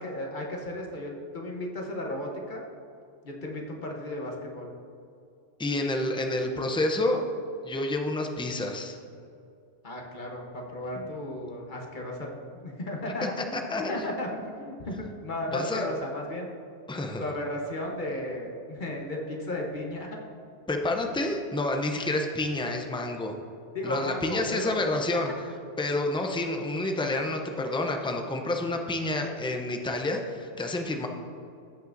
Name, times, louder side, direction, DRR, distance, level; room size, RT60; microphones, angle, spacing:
voice 1, 0.0-2.6 3.2-4.7 9.8-16.5 17.2-20.2 23.7-24.8, left 1 dB, 45° left, 0 dB, 1.1 m, -35 dB
voice 2, 5.6-7.2 7.6-9.0 13.5-13.8 15.5-15.9 16.9-17.2 20.7-23.4 23.8-25.5 25.8-31.1, left 2 dB, 10° left, 3 dB, 0.3 m, -29 dB
15.5 x 5.6 x 2.6 m, 2.4 s
omnidirectional pair, 1.1 m